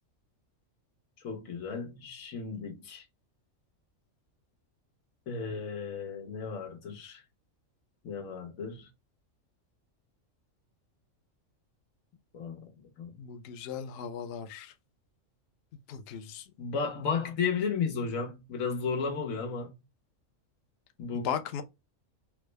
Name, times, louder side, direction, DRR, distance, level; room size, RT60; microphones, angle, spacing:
voice 1, 1.2-3.0 5.3-7.2 8.0-8.9 12.3-12.7 13.0-13.1 16.6-19.7 21.0-21.3, left 5 dB, 90° left, 1.3 m, -34 dB
voice 2, 13.2-14.7 15.9-16.4 21.2-21.6, left 8 dB, 65° left, 0.7 m, -37 dB
3.5 x 2.0 x 3.2 m
omnidirectional pair, 1.4 m